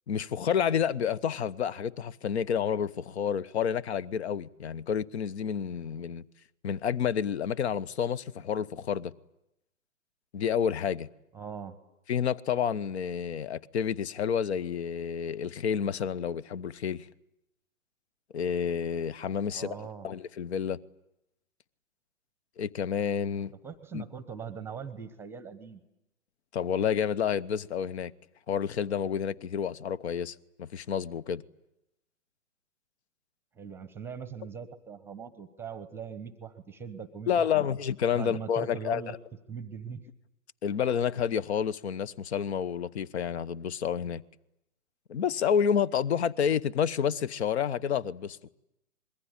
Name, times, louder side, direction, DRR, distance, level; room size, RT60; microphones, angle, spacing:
voice 1, 0.1-6.3 6.6-9.1 10.3-11.1 12.1-17.1 18.3-20.8 22.6-23.5 23.9-24.0 26.5-28.1 28.5-31.4 37.3-39.0 40.6-44.2 45.1-48.4, left 8 dB, 50° left, 1.1 m, -29 dB
voice 2, 11.3-11.8 19.5-20.1 23.6-25.8 33.6-37.7 38.1-39.1 39.5-40.0, right 6 dB, 5° right, 1.0 m, -41 dB
26.0 x 22.0 x 9.8 m
hypercardioid pair, 140°, 42 cm